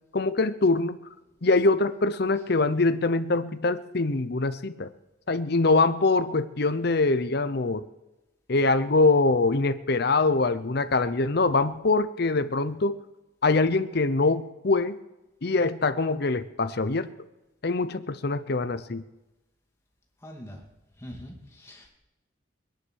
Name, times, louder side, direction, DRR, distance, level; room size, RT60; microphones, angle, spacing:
voice 1, 0.1-1.0 1.4-4.9 5.3-7.8 8.5-13.0 13.4-15.0 15.4-17.1 17.6-19.0, left 3 dB, 55° left, 12 dB, 0.8 m, -24 dB
voice 2, 20.2-20.6 21.0-21.9, equal, 15° left, 0 dB, 2.5 m, -43 dB
21.0 x 10.5 x 6.4 m, 1.0 s
head